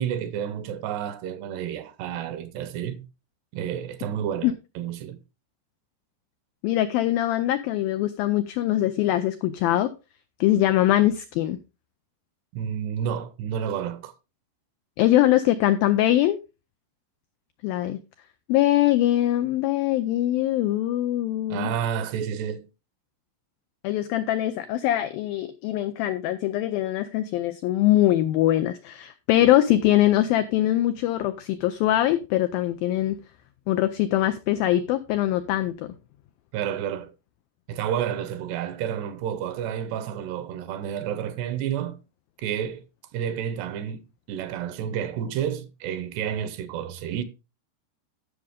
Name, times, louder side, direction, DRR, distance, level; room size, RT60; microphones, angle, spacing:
voice 1, 0.0-3.1 3.5-5.2 12.5-14.1 21.5-22.7 36.5-37.1 37.7-42.0 42.4-42.8 43.1-47.2, right 9 dB, 75° right, 2.9 m, -30 dB
voice 2, 6.6-9.9 10.4-11.6 15.0-16.4 17.6-18.0 18.5-21.7 23.8-33.2 33.7-35.9, left 14 dB, 85° left, 2.0 m, -22 dB
15.0 x 6.3 x 3.6 m
omnidirectional pair, 5.0 m